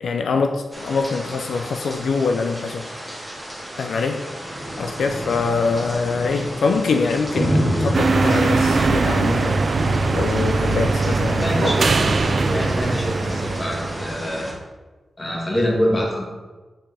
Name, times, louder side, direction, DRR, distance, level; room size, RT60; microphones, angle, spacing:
voice 1, 0.0-2.9 3.8-4.3 4.8-9.7 10.1-11.7, left 4 dB, 85° left, 0.4 m, -24 dB
sound 1, 0.7-14.5, equal, 5° right, 1.5 m, -29 dB
sound 2, 7.9-14.2, right 3 dB, 50° right, 0.4 m, -21 dB
voice 2, 11.4-14.5 15.2-16.2, equal, 25° left, 1.6 m, -25 dB
7.0 x 5.6 x 3.4 m
wide cardioid pair, 130°, 0 cm